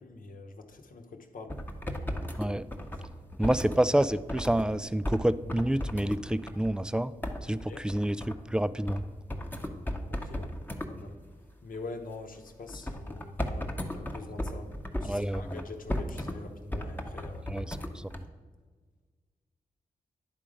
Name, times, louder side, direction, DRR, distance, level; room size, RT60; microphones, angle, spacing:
voice 1, 0.0-1.6 3.4-3.6 7.5-7.8 10.1-10.5 10.9-11.2 11.6-14.7 15.0-17.5, left 3 dB, 60° left, 4 dB, 0.9 m, -44 dB
sound 1, 1.5-4.7 5.0-5.2 5.5-6.8 7.2-8.4 8.9-9.0 9.3-10.9 12.7-16.4 16.7-18.2, left 1 dB, 10° left, 0.9 m, -35 dB
voice 2, 3.4-7.1 7.4-9.0 15.0-15.6 17.5-18.2, right 1 dB, 5° right, 15 dB, 0.3 m, -28 dB
10.0 x 3.7 x 5.0 m, 1.5 s
supercardioid pair, 40°, 16 cm